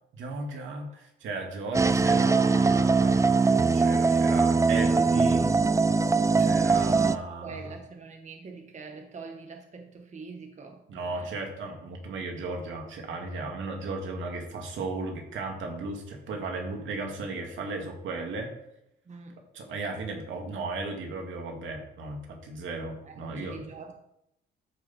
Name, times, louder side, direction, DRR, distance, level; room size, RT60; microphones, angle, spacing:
voice 1, 0.1-5.5 6.4-7.7 10.9-18.5 19.5-23.6, right 3 dB, 75° right, 2 dB, 2.3 m, -35 dB
sound 1, 1.7-7.2, right 4 dB, 15° right, 0.4 m, -22 dB
voice 2, 7.0-11.4 19.1-19.4 23.0-23.9, right 4 dB, 35° right, 4 dB, 1.2 m, -44 dB
13.0 x 5.7 x 4.2 m, 0.81 s
cardioid pair, 90°, 20 cm